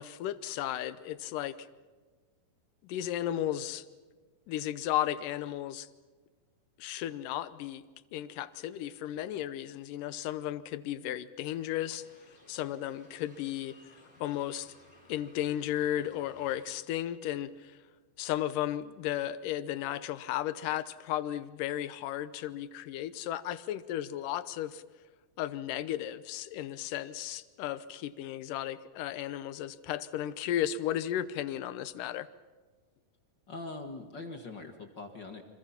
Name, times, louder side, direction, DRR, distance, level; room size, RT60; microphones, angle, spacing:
voice 1, 0.0-1.6 2.8-3.9 4.5-5.9 6.8-7.8 8.1-12.1 12.5-13.8 14.2-14.7 15.1-17.8 18.2-24.8 25.4-32.3, left 12 dB, 75° left, 14 dB, 2.3 m, -34 dB
sound 1, 11.4-16.8, left 2 dB, 10° left, 4.5 m, -59 dB
voice 2, 33.5-35.4, left 3 dB, 45° left, 5 dB, 1.6 m, -42 dB
29.5 x 25.5 x 5.8 m, 1.3 s
omnidirectional pair, 4.2 m